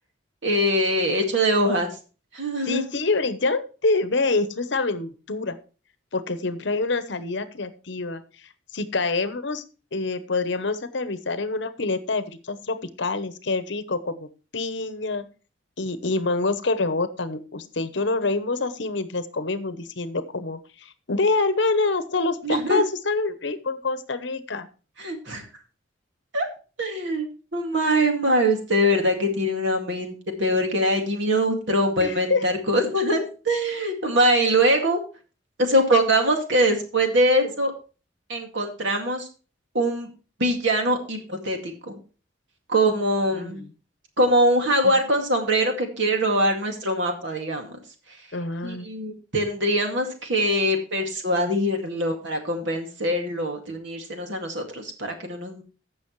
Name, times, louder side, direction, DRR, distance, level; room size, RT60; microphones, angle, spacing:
voice 1, 0.4-1.9 2.3-2.9 22.4-22.8 25.0-25.4 26.3-26.5 26.8-35.0 35.6-37.7 38.3-39.3 39.7-40.1 40.4-42.0 42.7-43.6 44.2-47.8 48.6-55.6, right 1 dB, 65° right, 3 dB, 2.1 m, -23 dB
voice 2, 2.6-5.6 6.1-8.2 8.7-9.6 9.9-15.2 15.8-24.7 32.0-32.4 43.3-43.7 44.8-44.9 48.3-48.9, left 3 dB, 60° left, 12 dB, 0.9 m, -26 dB
15.0 x 6.3 x 3.1 m, 0.35 s
head